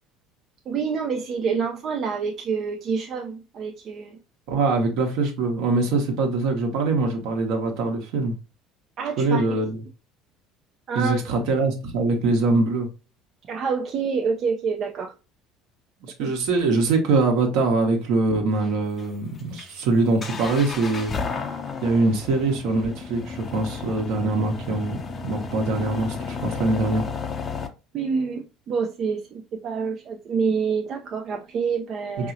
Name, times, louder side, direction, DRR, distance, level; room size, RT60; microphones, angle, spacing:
voice 1, 0.7-4.2 9.0-9.4 10.9-11.2 13.5-15.1 16.2-16.3 27.9-32.3, right 5 dB, 50° right, 0.5 m, -27 dB
voice 2, 4.5-8.3 9.2-9.8 10.9-12.9 16.0-21.1 21.8-25.0 25.2-27.0 32.2-32.3, right 3 dB, 70° right, 1.1 m, -23 dB
sound 1, 18.5-27.7, left 5 dB, 35° left, 0.7 m, -33 dB
4.6 x 2.7 x 2.6 m
hypercardioid pair, 65°, 0 cm